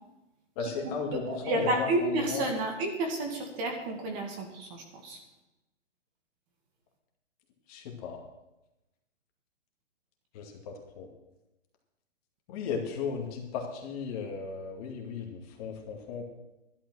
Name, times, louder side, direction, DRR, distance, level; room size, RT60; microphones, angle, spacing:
voice 1, 0.6-2.5 7.7-8.2 10.3-11.1 12.5-16.2, left 5 dB, 30° left, 1 dB, 2.3 m, -35 dB
voice 2, 1.1-5.2, right 2 dB, 25° right, 3 dB, 2.1 m, -31 dB
12.0 x 11.5 x 6.2 m, 0.98 s
hypercardioid pair, 155°, 36 cm